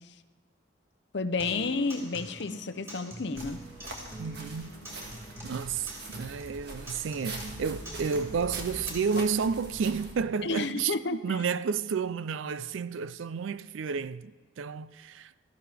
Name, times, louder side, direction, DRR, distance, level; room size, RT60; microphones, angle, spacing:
voice 1, 1.1-3.6 10.4-11.2, left 3 dB, 60° left, 0.6 m, -31 dB
Acoustic guitar, 1.4-9.4, equal, 15° right, 3.9 m, -45 dB
sound 1, 3.3-10.1, right 2 dB, 55° right, 1.7 m, -43 dB
voice 2, 4.2-4.7 5.4-15.3, right 6 dB, 75° right, 0.4 m, -31 dB
17.0 x 14.0 x 3.4 m
head